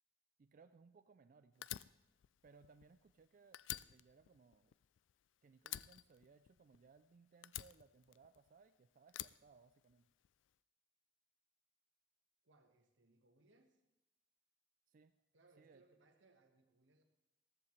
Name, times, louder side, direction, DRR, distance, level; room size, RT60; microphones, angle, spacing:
voice 1, 0.4-1.8 2.4-4.7 5.4-10.1 14.9-15.1 15.6-15.8, right 4 dB, 45° right, 9 dB, 0.4 m, -66 dB
Fire, 1.6-3.2 3.5-5.3 5.7-7.0 7.4-8.6 9.1-10.3, left 14 dB, 80° left, 0.3 m, -49 dB
voice 2, 12.4-13.8 15.3-17.0, right 3 dB, 85° right, 4 dB, 1.5 m, -71 dB
14.5 x 14.0 x 3.2 m, 0.93 s
head